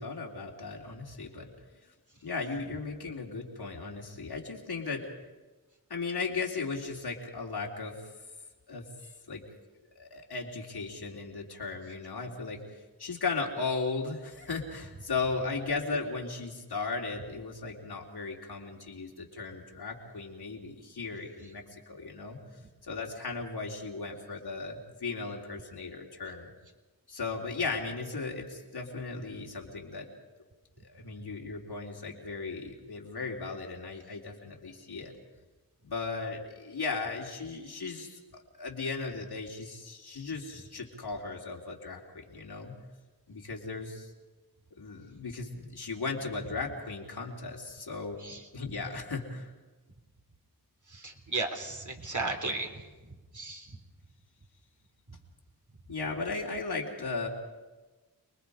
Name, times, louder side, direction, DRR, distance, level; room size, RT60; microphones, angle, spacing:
voice 1, 0.0-1.5 2.2-5.1 5.9-8.0 8.7-8.9 9.3-9.4 10.0-12.6 13.0-22.4 22.8-26.5 27.1-30.1 30.8-35.1 35.8-42.8 43.3-44.1 44.8-48.2 48.5-49.5 55.9-57.3, left 4 dB, 70° left, 0 dB, 3.6 m, -36 dB
voice 2, 50.9-52.8 53.3-53.8, right 3 dB, 50° right, 3 dB, 3.7 m, -35 dB
29.0 x 20.0 x 5.1 m, 1.2 s
cardioid pair, 45°, 40 cm